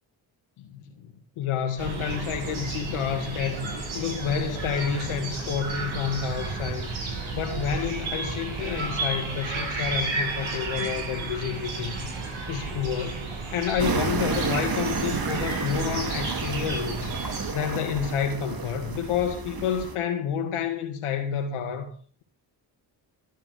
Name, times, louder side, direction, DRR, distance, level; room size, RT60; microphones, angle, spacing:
voice 1, 0.6-6.9 7.3-13.2 13.5-17.1 17.5-21.9, left 7 dB, 85° left, 2.1 m, -29 dB
sound 1, 1.8-17.5, right 3 dB, 70° right, 6.3 m, -32 dB
sound 2, 13.8-20.0, right 4 dB, 45° right, 2.6 m, -31 dB
13.0 x 8.9 x 6.8 m
supercardioid pair, 50°, 49 cm